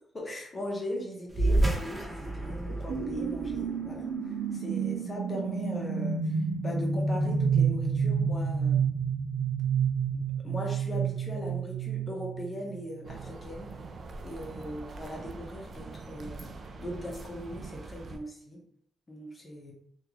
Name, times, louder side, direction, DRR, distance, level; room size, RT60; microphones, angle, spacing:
voice 1, 0.1-8.9 10.4-13.7 14.2-18.6 19.1-19.7, equal, 30° left, -1 dB, 1.0 m, -39 dB
sound 1, 1.3-6.2, right 1 dB, 20° right, 0.7 m, -31 dB
sound 2, 2.9-13.2, right 6 dB, 80° right, 0.7 m, -29 dB
sound 3, 13.0-18.2, right 3 dB, 50° right, 0.4 m, -43 dB
3.3 x 2.5 x 3.0 m, 0.67 s
cardioid pair, 100°, 0 cm